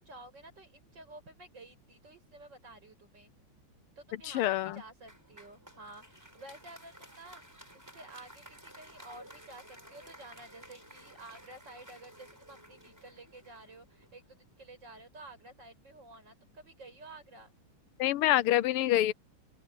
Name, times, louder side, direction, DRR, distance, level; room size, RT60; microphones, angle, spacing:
voice 1, 0.0-3.3 4.0-7.4 7.7-17.5, right 2 dB, 55° right, 8.9 m, -52 dB
voice 2, 4.2-4.8 18.0-19.1, left 14 dB, 85° left, 1.6 m, -26 dB
Applause, 5.1-14.4, equal, 10° right, 5.6 m, -54 dB
open air
omnidirectional pair, 2.4 m